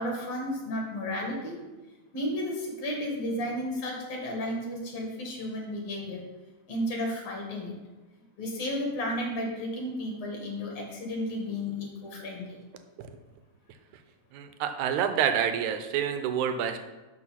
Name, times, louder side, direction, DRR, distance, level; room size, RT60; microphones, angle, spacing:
voice 1, 0.0-1.6 2.1-6.2 6.7-7.7 8.4-12.6, left 1 dB, 60° left, 0 dB, 3.1 m, -33 dB
voice 2, 14.3-16.8, right 8 dB, 85° right, 8 dB, 2.2 m, -28 dB
11.0 x 4.3 x 5.8 m, 1.1 s
omnidirectional pair, 3.3 m